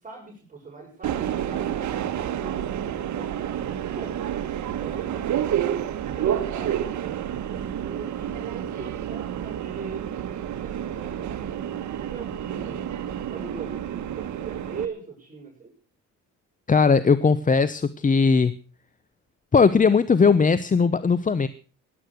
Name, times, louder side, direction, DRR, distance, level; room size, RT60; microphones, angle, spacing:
voice 1, 0.0-4.2 4.7-5.6 6.1-10.2 10.6-11.7 12.1-12.9 13.3-15.7, right 5 dB, 25° right, -2 dB, 7.4 m, -41 dB
Subway metro underground, 1.0-14.9, right 10 dB, 70° right, 1.5 m, -29 dB
voice 2, 16.7-18.5 19.5-21.5, left 5 dB, 25° left, 15 dB, 0.8 m, -19 dB
17.0 x 11.0 x 6.4 m, 0.39 s
cardioid pair, 90°, 30 cm